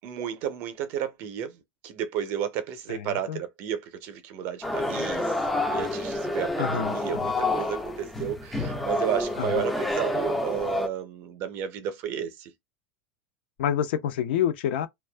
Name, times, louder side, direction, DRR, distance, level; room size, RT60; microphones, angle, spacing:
voice 1, 0.0-1.6 1.8-5.4 5.7-12.5, right 9 dB, 40° right, 0.6 m, -32 dB
voice 2, 2.9-3.4 6.6-7.3 9.4-9.6 13.6-14.9, left 9 dB, 70° left, 0.6 m, -28 dB
sound 1, 4.6-10.9, left 2 dB, ahead, 0.4 m, -28 dB
2.5 x 2.2 x 2.2 m
supercardioid pair, 160°, 6 cm